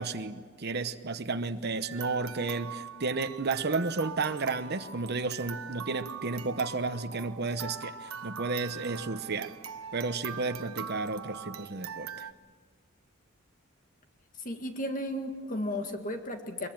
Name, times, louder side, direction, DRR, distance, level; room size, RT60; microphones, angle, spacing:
voice 1, 0.0-9.5 9.9-12.3, right 3 dB, 50° right, 8 dB, 1.0 m, -32 dB
sound 1, 1.8-12.3, right 7 dB, 85° right, 1.3 m, -42 dB
voice 2, 14.4-16.7, left 1 dB, 40° left, 5 dB, 1.9 m, -34 dB
23.0 x 22.5 x 8.9 m, 1.5 s
head